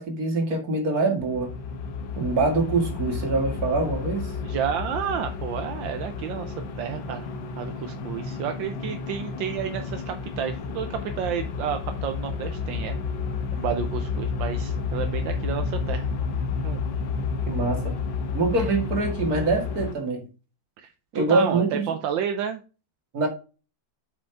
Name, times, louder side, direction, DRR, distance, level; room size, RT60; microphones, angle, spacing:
voice 1, 0.0-1.5 2.2-4.3 17.5-17.9 18.3-20.3 21.1-21.9 23.1-23.3, right 3 dB, 50° right, 2.5 m, -24 dB
sound 1, 1.2-19.9, left 5 dB, 80° left, 1.7 m, -31 dB
voice 2, 4.4-7.3 7.6-13.0 13.5-16.1 16.6-16.8 20.8-22.6, right 8 dB, 80° right, 1.4 m, -31 dB
8.4 x 5.1 x 3.4 m
omnidirectional pair, 2.1 m